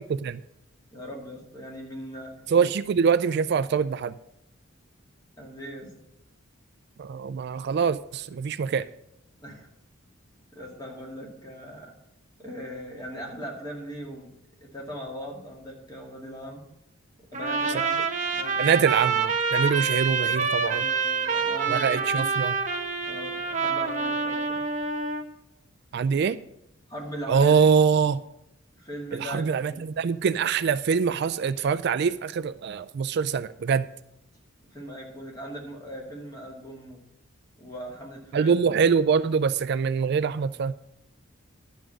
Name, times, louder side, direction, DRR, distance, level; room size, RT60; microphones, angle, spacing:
voice 1, 0.9-2.3 5.4-5.9 9.4-9.7 10.5-11.9 12.4-14.3 14.6-16.6 17.3-18.0 18.3-18.8 20.6-22.0 23.1-24.6 26.9-27.5 28.7-29.4 29.7-29.8 34.7-37.0 37.6-38.6, equal, 20° left, -1 dB, 2.3 m, -39 dB
voice 2, 2.5-4.1 7.0-8.8 18.6-20.9 21.7-22.5 25.9-26.4 27.3-28.2 29.1-33.9 38.3-40.7, right 6 dB, 55° right, 14 dB, 0.3 m, -24 dB
Trumpet, 17.3-25.2, right 5 dB, 35° right, 1.0 m, -27 dB
11.5 x 6.2 x 6.2 m, 0.81 s
head